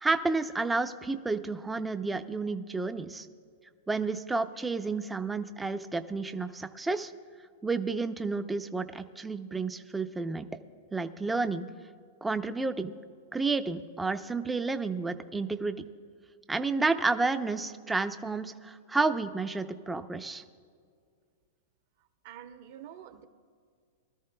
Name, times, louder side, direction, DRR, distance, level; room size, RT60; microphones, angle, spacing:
voice 1, 0.0-3.3 3.9-7.1 7.6-10.5 10.9-11.7 12.2-12.9 13.3-15.9 16.5-20.4, right 3 dB, 5° right, 9 dB, 0.5 m, -31 dB
voice 2, 22.2-23.2, right 10 dB, 55° right, 7 dB, 1.0 m, -47 dB
23.5 x 13.0 x 2.2 m, 2.1 s
supercardioid pair, 155°, 0 cm